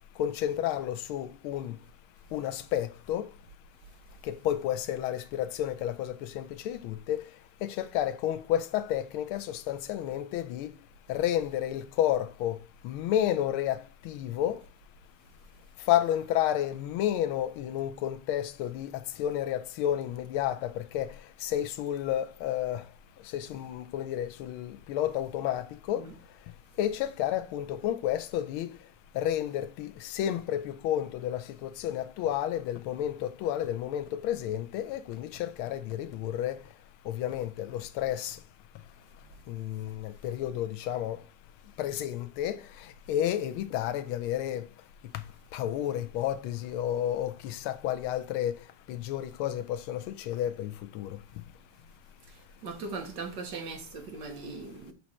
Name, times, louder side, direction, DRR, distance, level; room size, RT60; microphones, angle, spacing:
voice 1, 0.2-1.7 2.3-3.3 4.3-7.2 7.9-10.7 11.1-12.6 12.8-13.8 14.1-14.6 15.9-18.9 19.2-20.6 20.9-21.1 21.4-22.8 23.3-26.0 26.8-28.7 29.2-29.9 30.1-33.1 33.4-36.5 37.2-38.3 39.5-39.9 40.2-41.2 41.8-42.6 43.1-44.6 45.5-48.5 48.9-49.6 49.9-50.0 50.3-50.7 51.0-51.1, left 11 dB, 85° left, 1.4 m, -30 dB
voice 2, 52.6-54.9, right 4 dB, 60° right, 1.7 m, -39 dB
7.5 x 3.1 x 4.1 m
omnidirectional pair, 2.3 m